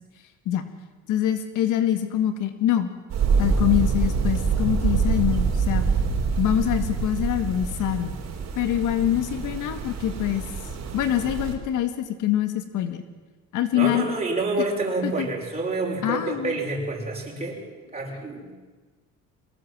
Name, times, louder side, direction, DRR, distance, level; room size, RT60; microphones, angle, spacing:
voice 1, 1.1-2.9 3.4-5.9 6.4-8.1 8.6-10.4 10.9-13.0 13.5-14.1 15.0-15.3 16.0-16.6, left 12 dB, 70° left, 9 dB, 1.8 m, -24 dB
sound 1, 3.1-11.5, right 5 dB, 55° right, 4.2 m, -25 dB
voice 2, 13.7-17.6 17.9-18.5, right 2 dB, 20° right, -3 dB, 6.0 m, -28 dB
23.0 x 20.0 x 7.8 m, 1.3 s
cardioid pair, 115°, 32 cm